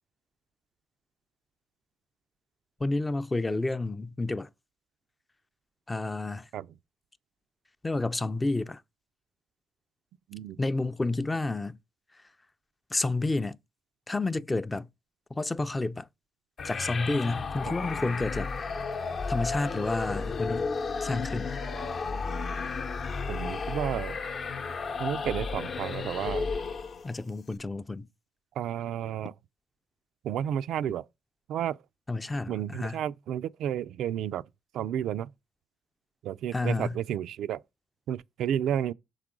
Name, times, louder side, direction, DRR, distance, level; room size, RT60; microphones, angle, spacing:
voice 1, 2.8-4.5 5.9-6.5 7.8-8.8 10.6-11.8 12.9-13.6 14.1-14.9 15.3-16.1 16.6-18.5 19.3-20.7 21.0-21.5 27.0-28.1 32.1-33.0 36.5-37.0, left 2 dB, 20° left, 0.4 m, -30 dB
sound 1, 16.6-27.2, left 4 dB, 50° left, 0.7 m, -33 dB
voice 2, 23.3-24.2 25.0-26.5 28.6-29.3 30.2-31.0 31.5-31.8 32.5-34.4 34.7-35.3 36.2-37.6 38.1-38.9, right 10 dB, 80° right, 0.3 m, -31 dB
5.9 x 4.8 x 3.7 m
cardioid pair, 90°, 0 cm